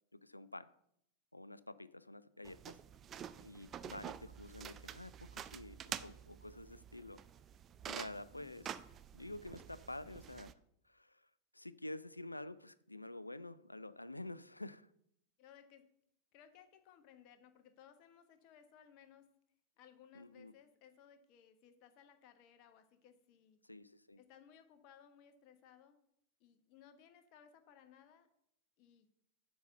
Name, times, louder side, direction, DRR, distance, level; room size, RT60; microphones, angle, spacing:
voice 1, 0.1-0.7 1.3-2.8 3.4-7.2 7.9-8.8 9.1-10.5 10.8-11.3 11.5-14.9 20.1-20.5 23.6-24.2, left 1 dB, 85° left, 0.3 m, -49 dB
sound 1, 2.4-10.5, right 9 dB, 25° right, 0.4 m, -49 dB
voice 2, 8.3-8.6 15.4-15.9 16.3-19.3 19.8-23.6 24.2-26.0 26.4-28.3 28.8-29.1, left 8 dB, 45° left, 1.1 m, -62 dB
7.0 x 5.4 x 6.8 m
figure-of-eight pair, 90°, 0 cm